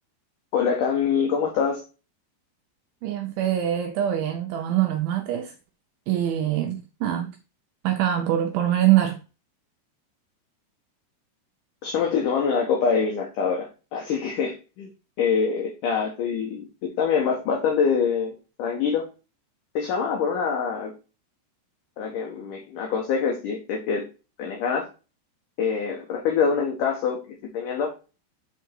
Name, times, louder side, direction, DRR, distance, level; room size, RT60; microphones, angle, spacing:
voice 1, 0.5-1.8 11.8-14.9 15.2-18.3 18.6-19.1 19.7-20.9 22.0-24.0 24.4-24.9 25.6-27.9, left 6 dB, 65° left, 2.3 m, -25 dB
voice 2, 3.0-5.5 6.1-7.4 7.8-9.2, right 12 dB, 85° right, 2.1 m, -24 dB
8.0 x 4.4 x 4.6 m
omnidirectional pair, 5.0 m